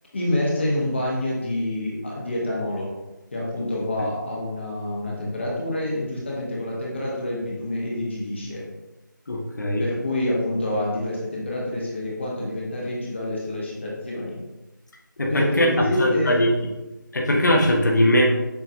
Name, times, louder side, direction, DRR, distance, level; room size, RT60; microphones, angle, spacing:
voice 1, 0.1-2.9 3.3-8.6 9.8-14.4 15.3-16.4, left 1 dB, 35° left, -5 dB, 0.9 m, -27 dB
voice 2, 9.3-9.8 15.2-15.7 16.0-16.5 17.1-18.2, left 1 dB, 60° left, 0 dB, 0.9 m, -20 dB
6.9 x 2.8 x 2.6 m, 1.1 s
figure-of-eight pair, 170°, 11 cm